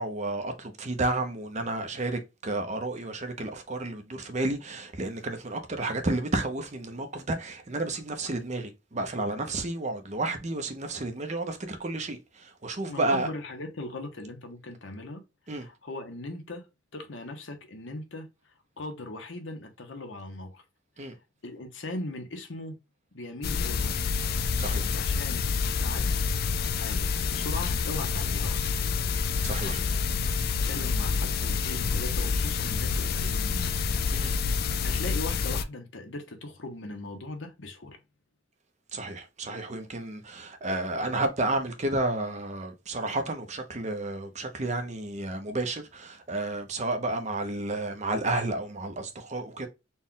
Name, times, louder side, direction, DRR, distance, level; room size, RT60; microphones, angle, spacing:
voice 1, 0.0-13.3 15.5-15.7 21.0-21.2 24.6-24.9 29.4-29.8 34.1-34.3 38.9-49.7, right 2 dB, 35° right, 0.7 m, -31 dB
voice 2, 12.9-15.2 15.5-16.7 16.9-18.3 18.8-20.6 21.4-22.8 23.1-24.2 24.9-25.5 25.8-26.3 26.7-28.6 29.6-29.9 30.6-34.4 34.8-38.0, left 2 dB, 65° left, 1.0 m, -39 dB
sound 1, 23.4-35.6, left 5 dB, 50° left, 0.4 m, -28 dB
4.3 x 2.3 x 3.7 m
head